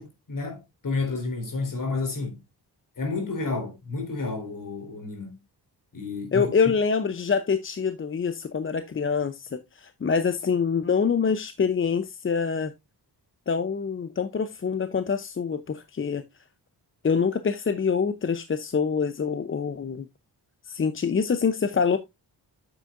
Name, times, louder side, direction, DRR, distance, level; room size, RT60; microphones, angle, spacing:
voice 1, 0.0-2.4 3.0-5.4 5.9-6.7, left 3 dB, 50° left, 4.0 m, -31 dB
voice 2, 6.3-12.7 13.5-16.2 17.0-20.1 20.6-22.0, left 6 dB, 30° left, 0.6 m, -25 dB
8.9 x 8.1 x 2.5 m
wide cardioid pair, 120°, 41 cm